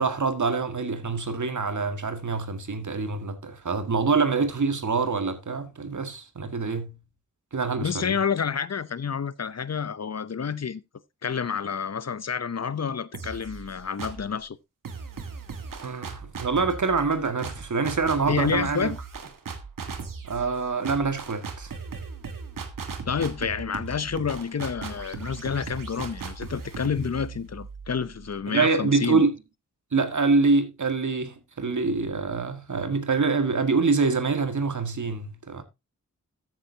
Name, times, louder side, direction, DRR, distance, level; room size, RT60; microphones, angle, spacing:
voice 1, 0.0-6.9 7.5-8.2 15.8-18.9 20.2-21.7 28.5-29.4 29.9-35.6, right 4 dB, 65° right, 2.0 m, -25 dB
voice 2, 7.8-10.8 11.2-14.6 18.3-19.0 23.1-29.2, left 6 dB, 55° left, 0.7 m, -29 dB
sound 1, 13.1-14.4 14.8-28.5, right 5 dB, 85° right, 1.5 m, -38 dB
13.5 x 8.2 x 2.8 m
cardioid pair, 40°, 32 cm